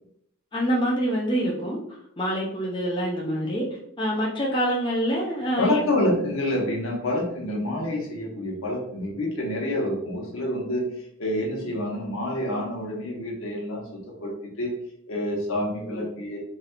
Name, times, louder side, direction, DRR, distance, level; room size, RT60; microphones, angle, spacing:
voice 1, 0.5-1.8 2.2-3.7 4.0-5.8 11.7-11.8 15.9-16.1, equal, 20° left, -3 dB, 0.6 m, -26 dB
voice 2, 5.6-10.9 11.2-14.7 15.1-16.4, left 1 dB, 80° left, -1 dB, 1.2 m, -27 dB
4.2 x 3.3 x 2.4 m, 0.71 s
head